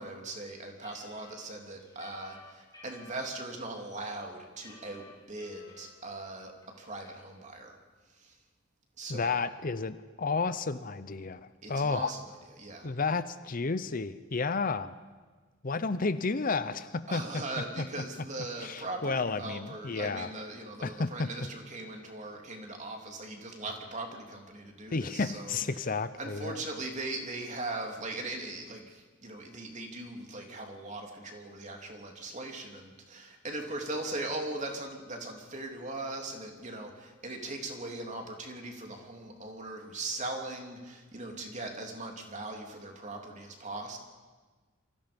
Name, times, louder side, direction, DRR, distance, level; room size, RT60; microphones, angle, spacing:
voice 1, 0.0-7.8 8.1-8.4 9.0-9.4 11.6-12.2 12.6-12.9 17.1-25.8 26.2-44.0, right 2 dB, 35° right, 2 dB, 3.1 m, -40 dB
sound 1, 0.8-3.2 3.8-3.9 4.2-5.9 6.2-6.3 6.6-7.1, left 2 dB, 20° left, 6.0 m, -53 dB
voice 2, 9.1-12.1 12.8-15.0 15.6-17.4 18.6-20.3 20.8-21.3 24.9-26.6, left 4 dB, 45° left, 13 dB, 0.7 m, -32 dB
28.0 x 23.5 x 5.3 m, 1.4 s
head